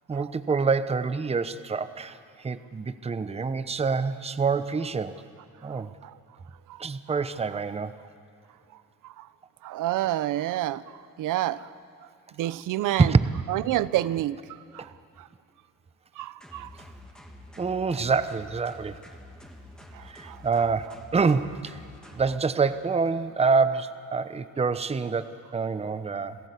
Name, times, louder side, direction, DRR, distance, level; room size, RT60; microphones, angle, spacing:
voice 1, 0.1-5.2 5.6-5.9 6.8-7.9 13.0-13.3 17.6-19.0 20.0-21.8 22.1-26.4, right 4 dB, 20° right, 12 dB, 0.9 m, -26 dB
voice 2, 5.7-6.1 6.7-6.8 9.0-9.3 9.6-10.8 11.2-11.7 12.4-13.1 13.5-14.4 14.7-14.9 15.2-15.3 16.2-16.7 19.9-20.4, right 14 dB, 70° right, 17 dB, 0.8 m, -29 dB
sound 1, 16.4-22.4, left 1 dB, ahead, 2.8 m, -48 dB
27.5 x 16.0 x 8.3 m, 2.3 s
cardioid pair, 100°, 33 cm